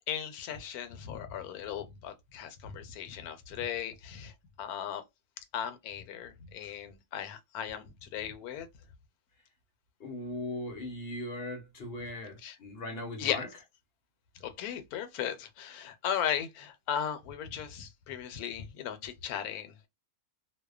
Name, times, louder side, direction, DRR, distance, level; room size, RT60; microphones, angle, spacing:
voice 1, 0.1-4.3 4.6-5.0 5.5-8.7 12.4-12.6 13.2-13.4 14.4-19.9, left 9 dB, 75° left, 1.1 m, -37 dB
voice 2, 10.0-13.5, left 1 dB, 55° left, 0.7 m, -39 dB
2.7 x 2.1 x 2.3 m
omnidirectional pair, 1.6 m